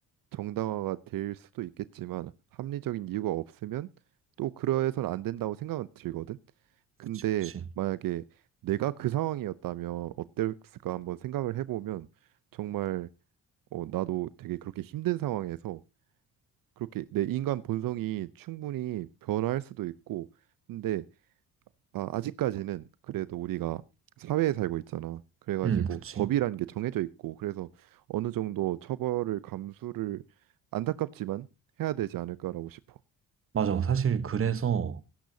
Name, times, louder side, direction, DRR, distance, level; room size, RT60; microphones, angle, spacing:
voice 1, 0.3-2.3 2.6-3.9 4.4-6.4 7.0-8.2 8.6-10.5 10.8-12.1 12.5-13.1 13.7-15.8 16.8-20.3 20.7-21.0 21.9-23.8 24.2-25.2 25.5-30.2 30.7-31.5 31.8-32.8, right 14 dB, 70° right, 0.7 m, -32 dB
voice 2, 25.6-26.3 33.5-35.0, right 7 dB, 40° right, 1.1 m, -28 dB
18.5 x 10.5 x 2.8 m
cardioid pair, 95°, 35 cm